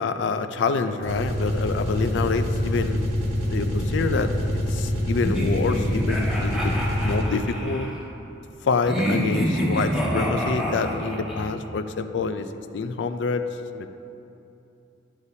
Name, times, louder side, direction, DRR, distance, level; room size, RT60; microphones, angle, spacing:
voice 1, 0.0-3.0 3.5-7.9 8.6-12.5 12.7-13.5 13.7-13.9, left 4 dB, 60° left, 9 dB, 0.4 m, -27 dB
Engine sound, 1.0-7.5, equal, 90° right, 1.5 m, -26 dB
sound 1, 5.2-7.9 8.9-11.5, equal, 5° right, 1.3 m, -27 dB
11.0 x 6.6 x 2.7 m, 2.8 s
head